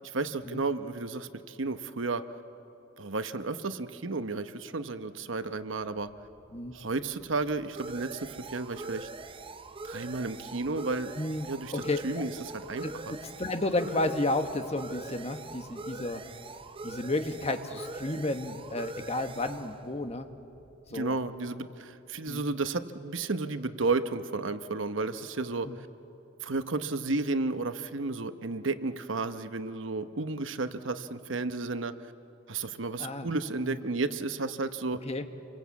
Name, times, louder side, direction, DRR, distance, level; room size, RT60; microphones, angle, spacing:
voice 1, 0.1-2.2 3.0-6.1 6.7-9.1 9.8-11.1 11.5-11.7 12.0-12.3 12.7-13.1 20.9-25.7 26.4-32.1 32.5-35.0, right 3 dB, 80° right, 10 dB, 1.0 m, -32 dB
sound 1, 6.1-21.3, right 3 dB, 30° right, 0.7 m, -44 dB
voice 2, 11.2-12.2 12.8-12.9 13.4-16.2 16.8-20.3 20.9-21.2 22.2-22.5 25.6-25.8 33.0-33.3 33.6-33.8 35.0-35.2, left 2 dB, 35° left, 7 dB, 1.3 m, -32 dB
28.0 x 23.0 x 8.4 m, 2.8 s
head